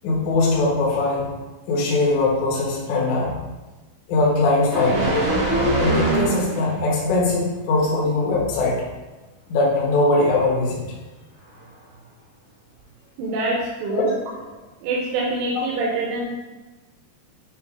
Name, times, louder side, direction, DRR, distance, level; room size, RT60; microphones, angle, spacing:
voice 1, 0.0-1.3 1.7-3.4 4.1-5.2 5.8-8.8 9.5-10.8 13.9-14.5 15.5-15.6, left 2 dB, 90° left, -4 dB, 1.6 m, -21 dB
sound 1, 4.7-6.8 7.2-7.4, right 1 dB, 55° right, 0.9 m, -22 dB
voice 2, 13.2-14.1 14.8-16.3, right 2 dB, 80° right, -4 dB, 3.4 m, -25 dB
9.0 x 3.0 x 4.9 m, 1.1 s
omnidirectional pair, 5.6 m